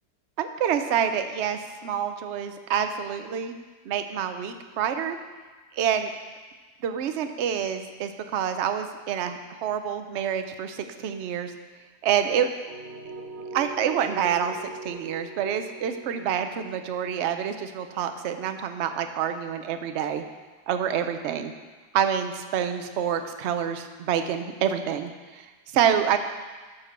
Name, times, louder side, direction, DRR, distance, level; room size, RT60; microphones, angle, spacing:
voice 1, 0.4-3.5 3.8-5.2 5.7-6.1 6.8-11.5 12.0-12.5 13.5-20.2 20.7-21.5 21.9-26.2, right 8 dB, 60° right, 8 dB, 0.8 m, -27 dB
sound 1, 12.7-18.5, right 2 dB, 45° right, 1.4 m, -41 dB
12.5 x 4.5 x 6.5 m, 1.4 s
omnidirectional pair, 1.7 m